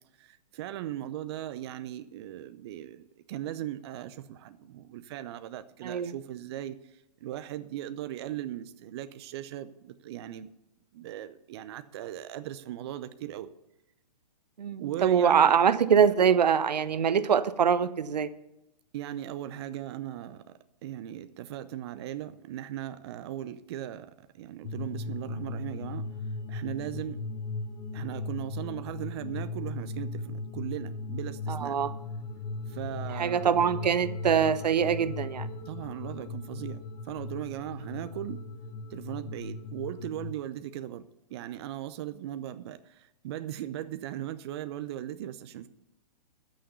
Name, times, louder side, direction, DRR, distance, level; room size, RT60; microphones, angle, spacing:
voice 1, 0.2-6.8 7.2-10.5 10.9-13.5 14.8-15.5 18.9-20.4 20.8-26.1 26.5-27.2 27.9-31.8 32.7-33.6 35.7-36.8 37.0-38.4 38.9-45.7, right 12 dB, 40° right, 11 dB, 0.7 m, -38 dB
voice 2, 14.6-18.3 31.5-31.9 33.2-35.5, right 7 dB, 80° right, 14 dB, 0.8 m, -24 dB
sound 1, 24.6-40.3, left 3 dB, 20° left, 1.0 m, -37 dB
13.5 x 6.5 x 6.8 m, 0.90 s
hypercardioid pair, 140°, 21 cm